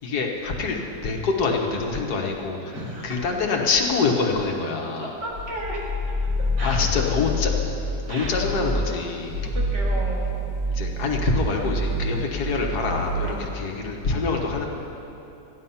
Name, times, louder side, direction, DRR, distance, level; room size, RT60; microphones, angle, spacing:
voice 1, 0.0-2.8 3.0-5.1 6.6-7.5 7.8-9.5 10.7-14.7, left 4 dB, 70° left, 1 dB, 1.8 m, -25 dB
voice 2, 2.7-3.1 5.0-6.0 6.6-6.8 8.1-8.3 9.4-10.3 13.2-13.5, right 1 dB, 85° right, -4 dB, 2.9 m, -34 dB
sound 1, 5.3-7.9 8.3-8.8 9.2-13.5, equal, 40° right, 2.9 m, -27 dB
14.0 x 10.5 x 5.6 m, 2.9 s
omnidirectional pair, 1.8 m